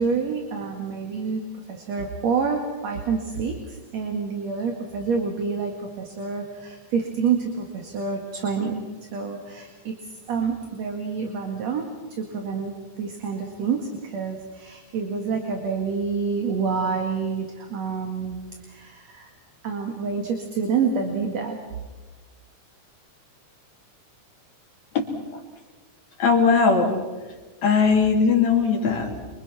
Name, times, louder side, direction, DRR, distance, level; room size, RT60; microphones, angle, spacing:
voice 1, 0.0-1.4 1.7-19.3 19.6-21.6, right 5 dB, 55° right, 3 dB, 3.0 m, -28 dB
voice 2, 25.0-25.4 26.2-27.0 27.6-29.2, left 5 dB, 60° left, 2 dB, 3.9 m, -20 dB
28.0 x 24.0 x 6.1 m, 1.3 s
omnidirectional pair, 3.7 m